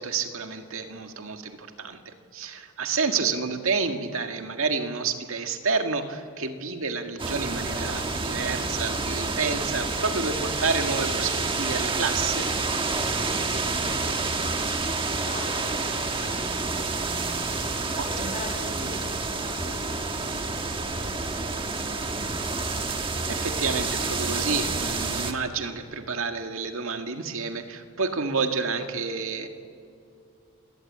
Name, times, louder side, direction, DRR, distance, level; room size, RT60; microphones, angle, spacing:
voice 1, 0.0-12.5 18.0-18.1 22.9-29.5, right 4 dB, 75° right, 5 dB, 1.9 m, -29 dB
sound 1, 7.2-25.3, right 3 dB, 25° right, 1.4 m, -28 dB
voice 2, 13.3-16.7 17.2-17.5 17.9-20.8, left 1 dB, 30° left, -1 dB, 7.3 m, -43 dB
27.0 x 18.5 x 8.6 m, 2.4 s
head